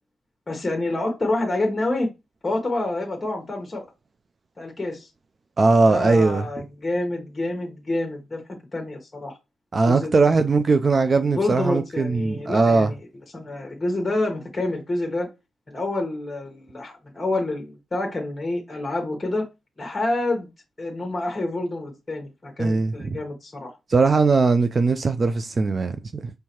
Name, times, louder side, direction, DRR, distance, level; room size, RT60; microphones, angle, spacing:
voice 1, 0.5-2.1 2.4-3.9 4.6-5.1 5.9-9.4 9.9-10.2 11.3-12.9 13.3-15.3 15.7-19.5 19.8-20.5 20.8-23.7, left 2 dB, 20° left, 1.1 m, -28 dB
voice 2, 5.6-6.4 9.7-12.9 22.6-23.2 23.9-26.3, right 3 dB, 35° right, 0.3 m, -20 dB
4.6 x 3.2 x 2.9 m
cardioid pair, 90°, 0 cm